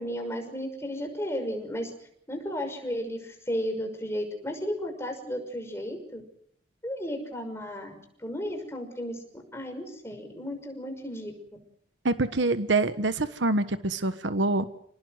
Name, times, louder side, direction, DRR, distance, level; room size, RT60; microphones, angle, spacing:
voice 1, 0.0-1.9 2.3-6.2 6.8-9.2 9.5-11.3, equal, 15° left, 4 dB, 6.0 m, -34 dB
voice 2, 12.0-14.7, right 2 dB, 75° right, 11 dB, 1.3 m, -25 dB
28.5 x 19.5 x 7.9 m, 0.68 s
head